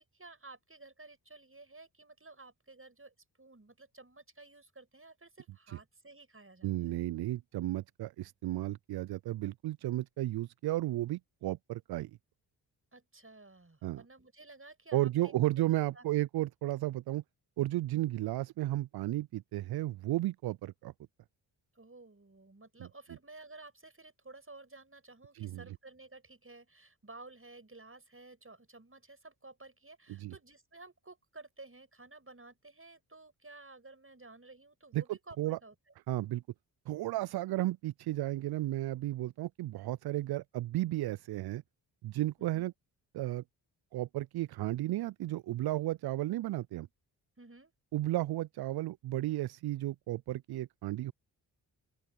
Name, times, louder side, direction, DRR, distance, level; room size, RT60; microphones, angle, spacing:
voice 1, 0.0-7.0 12.9-15.4 15.9-16.1 21.7-35.7 42.4-42.7 47.4-47.7, right 3 dB, 25° right, 6.5 m, -54 dB
voice 2, 6.6-12.1 13.8-14.0 14.9-17.2 17.6-20.9 25.3-25.6 30.1-30.3 34.9-35.0 35.4-35.6 36.1-36.4 36.9-41.6 42.0-42.7 43.1-43.4 43.9-46.9 47.9-51.1, right 16 dB, 50° right, 0.5 m, -33 dB
open air
hypercardioid pair, 40°, 50 cm